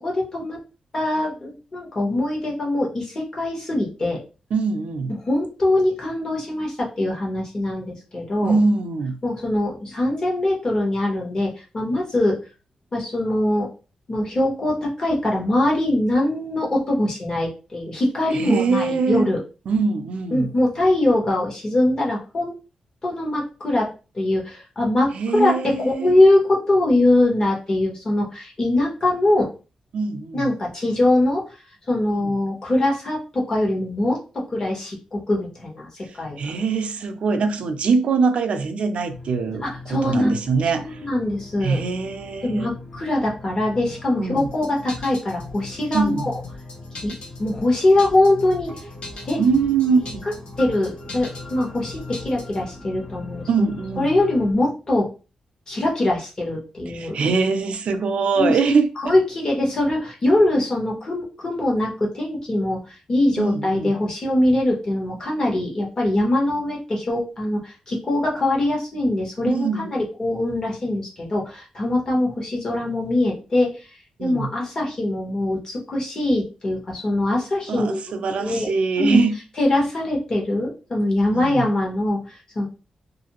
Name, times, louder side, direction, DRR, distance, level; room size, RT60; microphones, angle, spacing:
voice 1, 0.0-0.6 0.9-4.2 5.3-8.6 9.2-12.4 12.9-13.7 14.1-19.4 20.3-22.5 23.0-23.9 24.1-29.5 30.3-31.4 31.9-36.4 39.6-40.4 40.7-41.8 42.4-46.4 47.0-47.1 47.4-48.7 49.3-49.4 50.6-53.4 54.0-55.1 55.7-57.2 58.4-58.6 59.0-73.8 74.2-78.0 78.4-78.7 79.0-79.2 79.6-82.7, left 1 dB, 30° left, 0.9 m, -22 dB
voice 2, 4.5-5.1 8.4-9.2 18.3-19.3 19.7-20.5 25.1-26.2 29.9-30.5 32.2-32.3 36.4-40.9 41.6-42.7 44.2-44.5 45.9-46.3 49.4-50.3 53.5-54.1 56.9-59.1 63.4-63.9 69.5-69.9 74.2-74.5 77.7-79.3 81.3-81.7, right 4 dB, 65° right, 0.4 m, -22 dB
sound 1, 39.1-54.5, left 3 dB, 80° left, 1.5 m, -40 dB
sound 2, 44.4-52.6, left 3 dB, 55° left, 0.5 m, -40 dB
2.6 x 2.5 x 2.9 m
wide cardioid pair, 170°, 2 cm